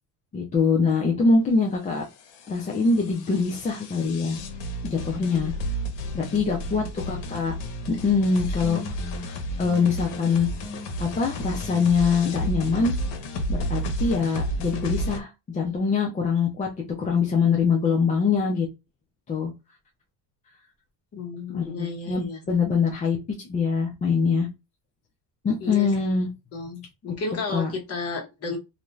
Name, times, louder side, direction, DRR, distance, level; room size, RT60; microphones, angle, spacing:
voice 1, 0.3-2.0 2.5-4.4 4.8-5.5 6.1-7.5 7.9-10.5 11.0-12.9 13.5-18.7 19.3-19.5 21.5-23.2 23.4-24.5 25.4-26.3 27.5-27.7, left 5 dB, 20° left, 0 dB, 0.4 m, -24 dB
sound 1, 2.0-15.2, equal, 80° left, 0.9 m, -32 dB
voice 2, 5.2-5.5 7.9-8.0 21.1-22.5 25.6-26.2 26.5-28.6, left 3 dB, 35° left, 1 dB, 1.1 m, -33 dB
2.6 x 2.2 x 3.1 m, 0.25 s
cardioid pair, 150°, 42 cm